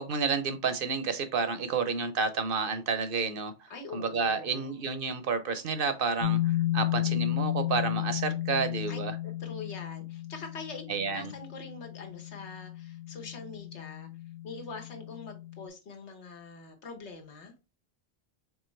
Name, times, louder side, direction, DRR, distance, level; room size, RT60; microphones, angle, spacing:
voice 1, 0.0-3.5 3.9-9.2 10.9-11.3, right 5 dB, 60° right, 10 dB, 0.7 m, -30 dB
voice 2, 3.7-4.8 8.9-14.1 14.4-17.5, left 4 dB, 80° left, 3 dB, 1.4 m, -44 dB
sound 1, 6.2-15.7, left 14 dB, 45° left, 0.7 m, -33 dB
4.6 x 3.6 x 3.1 m, 0.28 s
omnidirectional pair, 1.1 m